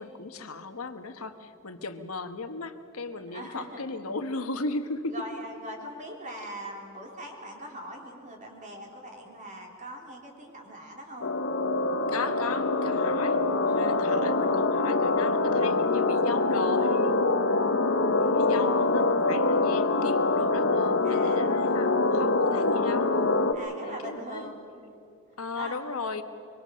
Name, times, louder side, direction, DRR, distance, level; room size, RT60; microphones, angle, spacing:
voice 1, 0.0-5.1 12.1-13.4 13.7-18.0 18.3-23.1 23.8-24.5 25.4-26.2, left 3 dB, 80° left, 8 dB, 1.4 m, -36 dB
voice 2, 3.3-3.8 5.1-11.3 13.7-14.0 18.2-18.4 21.0-21.4 23.5-24.7 25.6-25.8, equal, 35° right, 0 dB, 3.6 m, -41 dB
sound 1, 11.2-23.5, left 3 dB, 60° left, 1.1 m, -24 dB
24.5 x 23.5 x 6.4 m, 2.6 s
head